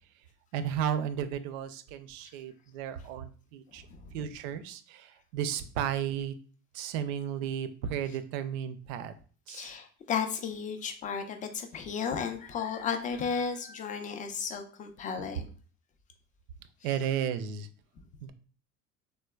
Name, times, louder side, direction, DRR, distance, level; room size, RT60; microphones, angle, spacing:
voice 1, 0.5-3.8 4.1-6.3 6.7-9.1 9.5-9.7 16.8-17.7 18.2-18.3, right 9 dB, 60° right, 11 dB, 0.5 m, -34 dB
voice 2, 9.5-15.5, left 6 dB, 20° left, 6 dB, 0.3 m, -34 dB
3.3 x 2.1 x 2.2 m, 0.40 s
hypercardioid pair, 75°, 44 cm